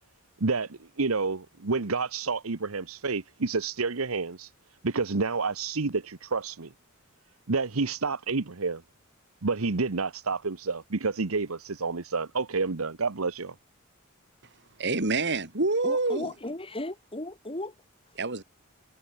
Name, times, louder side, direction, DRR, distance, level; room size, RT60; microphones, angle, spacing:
voice 1, 0.4-4.5 4.8-6.7 7.5-8.8 9.4-13.5, right 4 dB, 85° right, 1.1 m, -29 dB
voice 2, 14.8-16.3 18.2-18.4, right 3 dB, 55° right, 3.5 m, -26 dB
voice 3, 15.8-17.7, left 1 dB, 25° left, 3.6 m, -36 dB
head